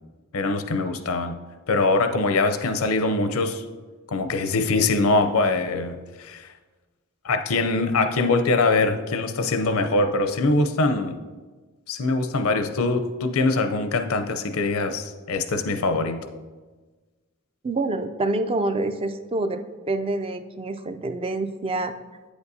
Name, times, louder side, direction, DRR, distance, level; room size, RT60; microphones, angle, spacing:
voice 1, 0.3-1.4 1.7-3.6 4.1-6.5 7.2-11.2 11.9-16.2, left 3 dB, 75° left, 9 dB, 0.6 m, -23 dB
voice 2, 17.6-19.6 19.9-21.9, right 2 dB, 25° right, 8 dB, 0.4 m, -26 dB
8.6 x 8.1 x 2.7 m, 1.3 s
head